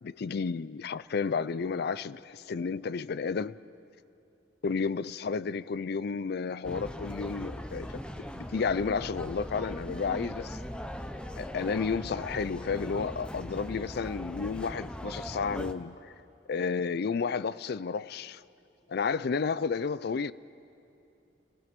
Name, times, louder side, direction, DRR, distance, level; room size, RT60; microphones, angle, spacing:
voice 1, 0.0-3.6 4.6-10.6 11.4-16.1 16.5-18.4 18.9-20.3, left 5 dB, 55° left, 0.4 m, -32 dB
sound 1, 6.6-15.7, equal, 5° left, 0.7 m, -40 dB
sound 2, 7.6-12.7, equal, 85° left, 3.8 m, -54 dB
28.5 x 18.5 x 5.2 m
head